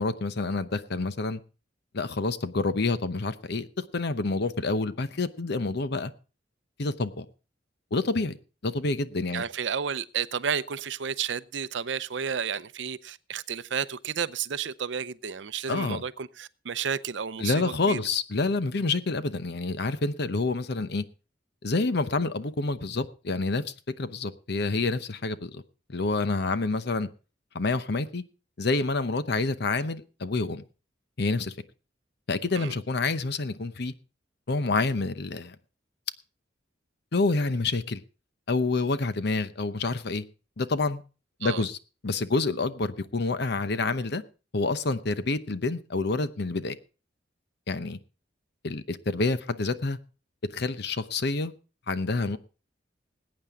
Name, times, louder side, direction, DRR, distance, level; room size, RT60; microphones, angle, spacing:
voice 1, 0.0-1.4 1.9-6.1 6.8-7.3 7.9-8.4 8.6-9.4 15.7-16.0 17.4-21.0 21.6-25.6 25.9-27.1 27.5-28.2 28.6-30.6 31.2-31.5 32.3-33.9 34.5-35.5 37.1-38.0 38.5-40.2 40.6-41.0 41.4-41.8 42.0-44.2 44.5-46.8 47.7-48.0 48.6-50.0 50.5-51.5 51.9-52.4, left 3 dB, 60° left, 0.8 m, -28 dB
voice 2, 9.3-18.0 32.5-32.7 41.4-41.6, right 7 dB, 70° right, 0.6 m, -32 dB
20.5 x 8.9 x 3.6 m
head